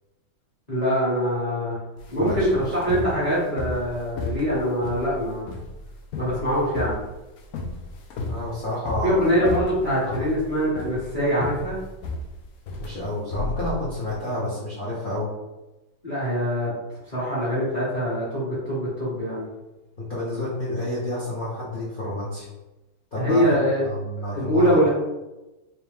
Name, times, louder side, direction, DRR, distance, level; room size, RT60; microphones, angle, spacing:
voice 1, 0.7-1.8 2.1-5.5 6.1-7.0 9.0-11.8 16.0-16.7 17.1-19.5 23.1-23.9 24.3-24.9, equal, 25° left, -8 dB, 1.0 m, -23 dB
sound 1, 2.0-14.2, left 1 dB, 85° left, 0.8 m, -33 dB
voice 2, 2.1-2.9 8.3-9.5 10.0-10.3 12.8-15.3 20.0-22.5 23.1-23.5 23.8-24.9, left 1 dB, 45° left, -8 dB, 0.6 m, -30 dB
3.2 x 3.1 x 3.4 m, 1.0 s
omnidirectional pair, 2.2 m